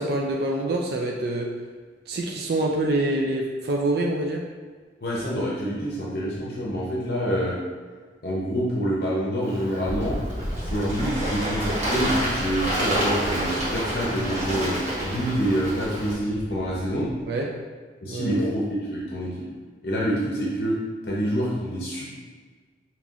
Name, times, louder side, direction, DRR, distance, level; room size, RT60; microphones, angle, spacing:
voice 1, 0.0-1.5 2.1-4.4 17.3-17.5 18.1-18.5, right 2 dB, 55° right, 0 dB, 0.4 m, -26 dB
voice 2, 5.0-7.6 8.2-10.2 10.6-17.1 18.0-19.3 19.8-22.1, equal, 55° left, -5 dB, 0.7 m, -27 dB
Bird / Water, 9.4-16.1, right 1 dB, 40° right, 1.3 m, -29 dB
sound 1, 9.8-17.2, equal, 90° right, 1.1 m, -35 dB
5.4 x 2.9 x 2.4 m, 1.5 s
head